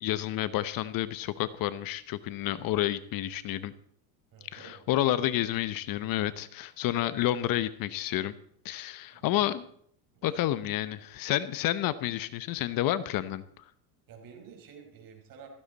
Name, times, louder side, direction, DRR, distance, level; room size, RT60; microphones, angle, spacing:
voice 1, 0.0-3.7 4.5-8.3 8.6-9.7 10.2-13.6, left 13 dB, 50° left, 14 dB, 1.0 m, -30 dB
voice 2, 4.3-4.8 9.1-9.4 10.1-10.4 14.1-15.5, right 7 dB, 50° right, 3 dB, 5.2 m, -50 dB
16.0 x 14.5 x 4.2 m, 0.63 s
supercardioid pair, 110°, 44 cm